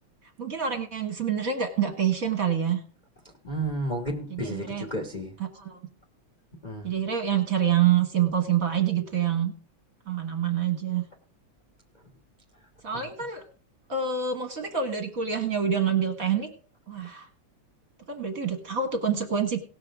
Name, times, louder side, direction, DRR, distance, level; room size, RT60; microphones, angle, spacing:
voice 1, 0.4-2.8 4.3-4.9 5.4-5.8 6.8-9.5 10.1-11.0 12.8-13.4 13.9-16.5 16.9-17.3 18.1-19.6, right 8 dB, 40° right, 6 dB, 1.3 m, -26 dB
voice 2, 3.4-5.3 6.6-6.9 12.9-13.1, right 1 dB, 45° left, 4 dB, 0.5 m, -32 dB
18.0 x 6.7 x 4.8 m, 0.39 s
omnidirectional pair, 3.5 m